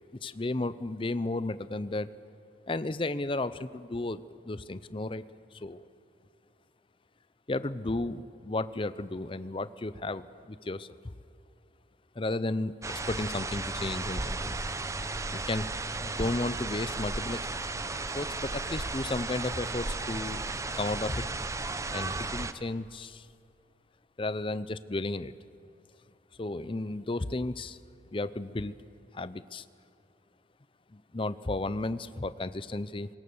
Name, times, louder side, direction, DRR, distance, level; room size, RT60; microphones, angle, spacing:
voice 1, 0.2-2.1 2.7-5.2 5.5-5.9 7.5-11.0 12.2-14.6 15.3-15.7 16.0-17.5 18.1-20.4 20.7-21.2 21.9-23.3 24.2-25.3 26.4-27.8 28.1-28.8 29.1-29.6 30.9-33.1, left 2 dB, 25° left, 15 dB, 0.5 m, -33 dB
sound 1, 12.8-22.5, right 3 dB, 15° right, 0.6 m, -34 dB
24.0 x 20.0 x 7.1 m, 2.7 s
head